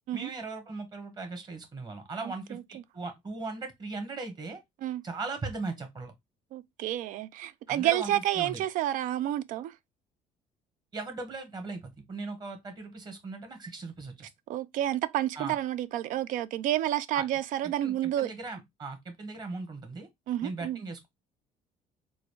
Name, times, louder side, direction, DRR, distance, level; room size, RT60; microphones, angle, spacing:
voice 1, 0.1-4.6 5.0-6.1 7.7-8.6 10.9-14.3 15.3-15.6 17.1-17.2 17.6-20.1 20.4-21.1, right 3 dB, 30° right, 1.3 m, -38 dB
voice 2, 2.2-2.6 4.8-5.0 6.5-9.7 14.5-18.3 20.3-20.8, right 13 dB, 70° right, 0.4 m, -30 dB
4.0 x 2.4 x 3.1 m
cardioid pair, 125°, 14 cm